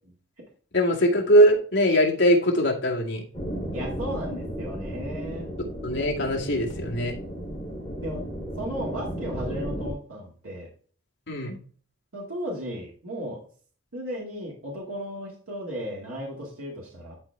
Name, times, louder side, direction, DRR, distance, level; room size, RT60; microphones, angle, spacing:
voice 1, 0.7-3.2 5.6-7.1 11.3-11.6, equal, 55° left, -2 dB, 2.1 m, -21 dB
sound 1, 3.3-9.9, equal, 20° left, 2.8 m, -34 dB
voice 2, 3.7-5.5 8.0-8.3 8.6-10.7 12.1-13.5 13.9-17.2, equal, 90° right, -3 dB, 2.1 m, -35 dB
11.5 x 4.2 x 3.4 m, 0.44 s
head